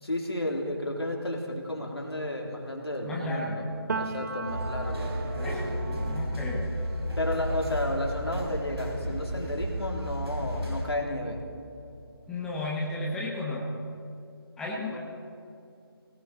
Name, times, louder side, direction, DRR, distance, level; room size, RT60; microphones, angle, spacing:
voice 1, 0.0-3.6 3.9-5.1 7.2-11.4 14.9-15.0, left 1 dB, 85° left, 0 dB, 3.2 m, -32 dB
voice 2, 3.0-3.7 5.4-6.7 12.3-13.7 14.6-15.0, left 1 dB, 5° left, -4 dB, 1.1 m, -33 dB
Piano, 3.9-11.5 11.9-13.4, right 4 dB, 45° right, 1.0 m, -40 dB
sound 1, 4.5-10.9, equal, 85° right, 4.7 m, -32 dB
18.5 x 17.5 x 4.1 m, 2.6 s
figure-of-eight pair, 155°, 13 cm